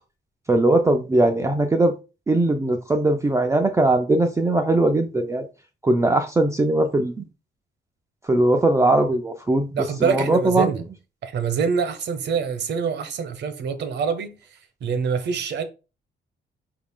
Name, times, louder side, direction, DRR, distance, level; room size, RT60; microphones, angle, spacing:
voice 1, 0.5-1.9 2.3-5.4 5.8-7.1 8.2-10.7, right 2 dB, 15° right, 0.3 m, -20 dB
voice 2, 9.7-10.8 11.2-14.4 14.8-15.6, right 6 dB, 65° right, 0.7 m, -25 dB
5.0 x 2.4 x 3.6 m
wide cardioid pair, 155°, 19 cm